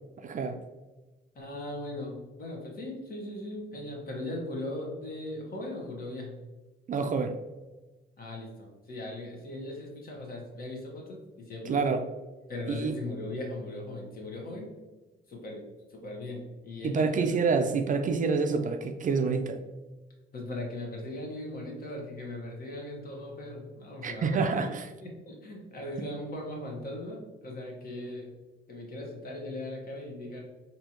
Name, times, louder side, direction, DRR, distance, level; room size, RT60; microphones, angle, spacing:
voice 1, 0.2-0.6 6.9-7.4 11.7-12.1 12.7-12.9 16.8-19.6 24.0-24.8, right 4 dB, 40° right, 7 dB, 0.4 m, -27 dB
voice 2, 1.3-6.4 8.2-11.8 12.5-14.7 15.3-15.6 15.9-17.3 20.3-24.7 25.0-28.3 28.7-30.4, left 1 dB, 50° left, -1 dB, 1.3 m, -39 dB
4.3 x 2.8 x 2.9 m, 1.2 s
cardioid pair, 90°, 20 cm